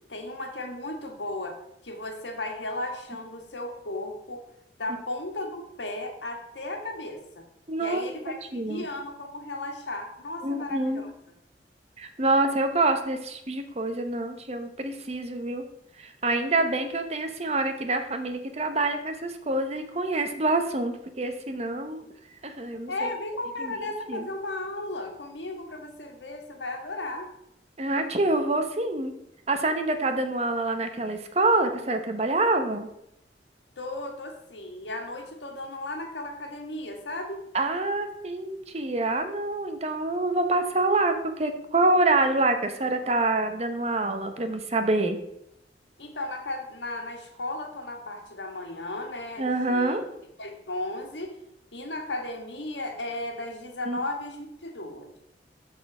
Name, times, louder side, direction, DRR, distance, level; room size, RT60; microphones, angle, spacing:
voice 1, 0.1-4.4 4.8-7.4 7.8-11.1 22.9-27.3 33.8-37.5 46.0-50.0 50.4-51.4 51.7-55.1, left 2 dB, 85° left, 3 dB, 1.7 m, -35 dB
voice 2, 7.7-8.1 8.5-8.8 10.4-11.0 12.0-15.6 16.0-22.0 22.4-22.9 23.6-23.7 24.1-24.3 27.8-29.1 29.5-32.9 37.5-45.2 49.4-50.0 53.8-54.0, right 2 dB, 35° right, 7 dB, 0.9 m, -26 dB
13.0 x 4.4 x 4.9 m, 0.81 s
head